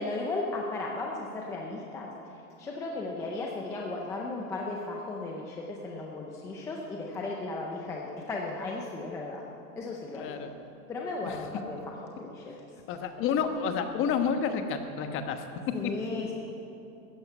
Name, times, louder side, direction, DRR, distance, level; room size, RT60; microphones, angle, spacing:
voice 1, 0.0-9.5 9.8-10.4 10.9-12.5 15.7-16.3, left 2 dB, 5° left, -1 dB, 0.4 m, -35 dB
voice 2, 10.1-10.5 11.2-11.4 12.9-15.4, left 6 dB, 25° left, 7 dB, 1.1 m, -29 dB
14.0 x 10.5 x 8.3 m, 2.8 s
hypercardioid pair, 145°, 46 cm